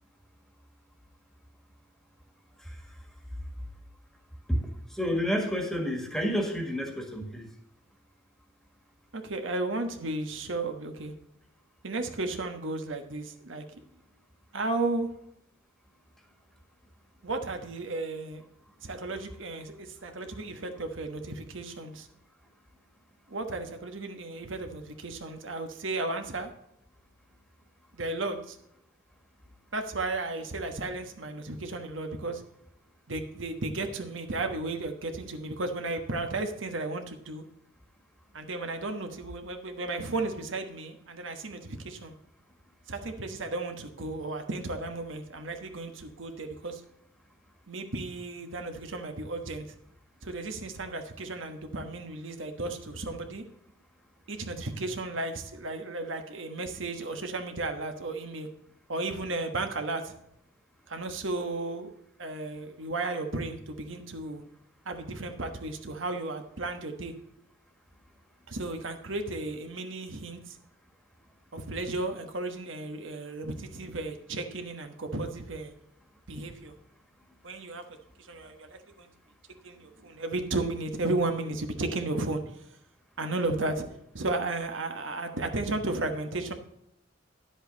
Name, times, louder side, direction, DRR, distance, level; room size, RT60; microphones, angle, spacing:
voice 1, 4.9-7.5, equal, ahead, 3 dB, 1.7 m, -29 dB
voice 2, 9.1-11.1 11.8-13.8 14.5-15.1 17.2-18.4 18.8-22.1 23.3-26.5 27.9-28.6 29.7-32.4 33.1-37.4 38.3-42.1 42.9-46.8 47.7-49.7 50.2-53.4 54.3-58.5 58.9-60.1 60.9-61.9 62.2-64.4 64.8-67.1 68.5-70.6 71.5-75.7 76.3-76.7 77.4-77.8 78.2-79.1 79.6-82.6 83.2-83.8 84.1-86.5, right 2 dB, 75° right, 6 dB, 1.3 m, -34 dB
10.5 x 8.0 x 4.0 m, 0.75 s
head